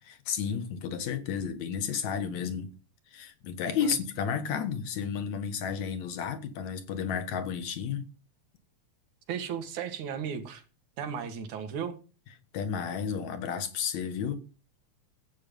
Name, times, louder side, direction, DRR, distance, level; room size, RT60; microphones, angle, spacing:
voice 1, 0.0-2.7 3.1-8.0 12.5-14.4, left 7 dB, 70° left, 2.7 m, -32 dB
voice 2, 9.3-10.6 11.0-12.0, right 7 dB, 80° right, 3.2 m, -35 dB
14.5 x 8.6 x 5.4 m
omnidirectional pair, 3.4 m